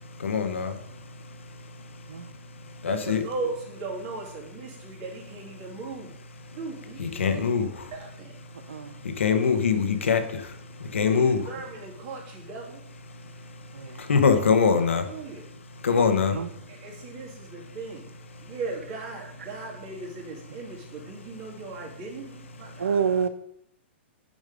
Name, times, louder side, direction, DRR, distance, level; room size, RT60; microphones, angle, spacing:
voice 1, 0.2-0.7 2.8-3.2 7.0-7.7 9.2-10.2 10.9-11.4 14.1-15.0 15.8-16.3, left 6 dB, 85° left, 7 dB, 1.1 m, -22 dB
voice 2, 2.9-6.2 6.6-8.4 11.1-12.8 15.1-15.5 16.2-16.4 16.7-18.1 18.4-23.0, right 3 dB, 45° right, -1 dB, 2.6 m, -38 dB
voice 3, 22.8-23.3, right 6 dB, 90° right, 13 dB, 0.7 m, -27 dB
7.2 x 5.3 x 5.1 m, 0.74 s
hypercardioid pair, 130°, 7 cm